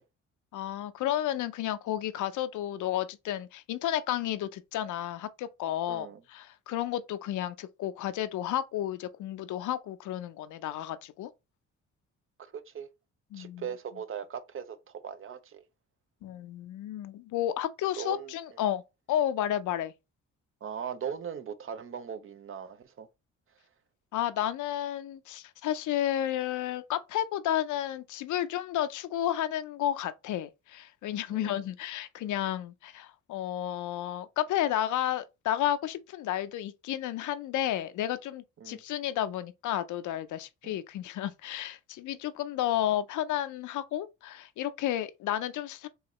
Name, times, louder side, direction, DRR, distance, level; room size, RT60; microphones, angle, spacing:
voice 1, 0.5-11.3 13.3-13.6 16.2-18.8 19.1-19.9 24.1-45.9, left 12 dB, 75° left, 0.6 m, -32 dB
voice 2, 5.9-6.2 12.4-12.9 13.3-14.8 15.0-15.6 18.0-18.3 20.6-23.1 31.3-31.6 38.6-38.8 40.6-40.8, right 8 dB, 45° right, 0.6 m, -39 dB
4.8 x 3.1 x 3.1 m
cardioid pair, 90°, 30 cm